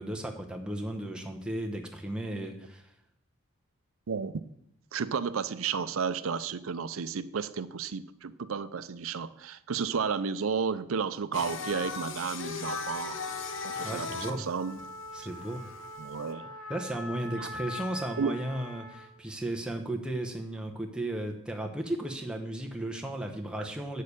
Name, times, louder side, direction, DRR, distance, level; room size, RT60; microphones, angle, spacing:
voice 1, 0.0-2.9 13.8-14.4 15.1-15.7 16.7-24.0, right 1 dB, 5° right, 2 dB, 0.9 m, -35 dB
voice 2, 4.9-13.2 13.6-14.8 15.2-15.3 16.0-16.5 17.4-17.5 18.2-18.3 23.6-23.7, right 6 dB, 75° right, 14 dB, 0.5 m, -32 dB
Singing, 11.3-16.3, left 5 dB, 65° left, 0.9 m, -38 dB
Trumpet, 12.6-19.2, left 1 dB, 85° left, 1.3 m, -42 dB
8.4 x 6.6 x 6.7 m, 0.75 s
head